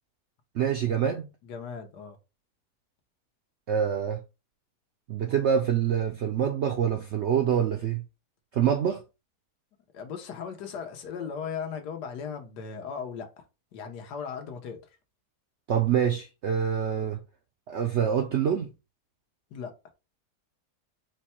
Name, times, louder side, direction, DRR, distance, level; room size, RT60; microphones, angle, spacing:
voice 1, 0.5-1.3 3.7-4.2 5.1-8.0 8.5-9.0 15.7-17.2 17.7-18.7, right 8 dB, 75° right, 0.6 m, -26 dB
voice 2, 1.4-2.2 9.9-13.4 13.7-14.8 19.5-19.7, left 6 dB, 90° left, 1.5 m, -37 dB
4.5 x 2.2 x 4.2 m
omnidirectional pair, 1.7 m